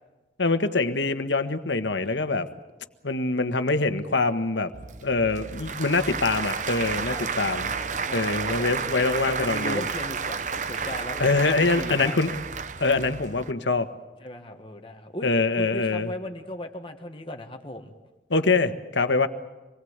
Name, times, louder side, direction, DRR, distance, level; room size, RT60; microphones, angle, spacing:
voice 1, 0.4-2.5 3.0-4.7 5.0-7.7 8.1-9.8 11.2-12.3 12.8-13.9 15.2-16.1 18.3-19.3, left 3 dB, 80° left, 9 dB, 1.5 m, -24 dB
Applause / Crowd, 4.7-13.5, right 5 dB, 40° right, 0.8 m, -31 dB
voice 2, 7.6-12.1 14.2-17.9, left 1 dB, 30° left, 4 dB, 1.7 m, -37 dB
26.5 x 20.5 x 8.1 m, 1.2 s
head